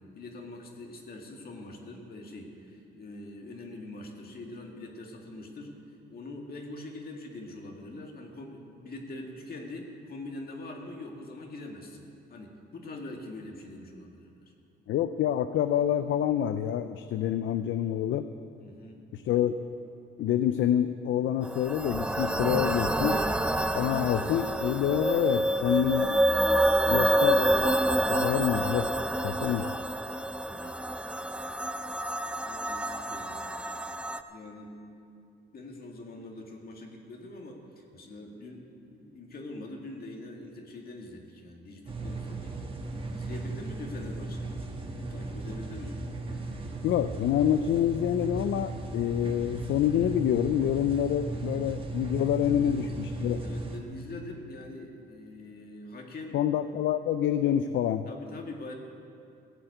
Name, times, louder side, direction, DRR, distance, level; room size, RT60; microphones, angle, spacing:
voice 1, 0.0-5.8 6.1-14.5 18.6-19.0 30.5-31.0 32.4-33.5 34.3-34.8 35.5-42.6 42.9-44.6 45.1-46.0 50.9-51.2 52.4-52.9 53.4-56.4 58.1-58.7, left 2 dB, 50° left, 1 dB, 2.1 m, -43 dB
voice 2, 14.9-18.3 19.1-19.5 20.2-23.2 23.7-26.2 26.9-28.9 29.2-29.7 46.8-53.4 56.3-58.0, left 10 dB, 75° left, 10 dB, 0.5 m, -27 dB
sound 1, 21.4-34.2, right 1 dB, 5° right, 0.5 m, -28 dB
sound 2, 41.9-53.8, right 2 dB, 25° right, 1.6 m, -36 dB
16.0 x 7.9 x 7.9 m, 2.5 s
cardioid pair, 90°, 20 cm